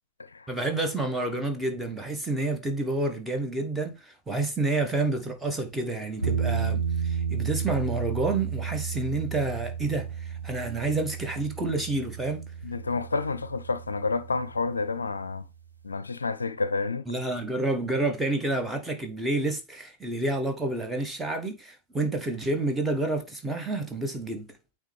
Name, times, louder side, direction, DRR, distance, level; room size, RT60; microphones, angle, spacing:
voice 1, 0.5-12.5 17.1-24.5, right 2 dB, 10° right, 1.4 m, -29 dB
sound 1, 6.2-15.1, right 6 dB, 90° right, 1.0 m, -32 dB
voice 2, 12.6-15.5 15.8-17.0, left 4 dB, 75° left, 0.4 m, -29 dB
8.8 x 3.4 x 3.4 m
figure-of-eight pair, 90°, 0 cm